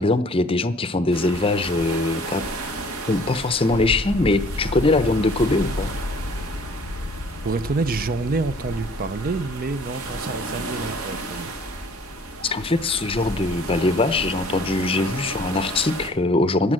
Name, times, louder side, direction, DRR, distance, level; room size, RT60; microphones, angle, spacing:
voice 1, 0.0-2.4 3.1-5.9 12.4-16.7, left 2 dB, 25° left, 0.7 m, -22 dB
sound 1, 1.1-16.1, right 2 dB, 75° right, 2.2 m, -33 dB
sound 2, 3.7-10.1, left 2 dB, 65° left, 0.7 m, -33 dB
voice 2, 7.4-11.5, right 3 dB, 40° right, 0.5 m, -27 dB
15.5 x 10.5 x 7.6 m
head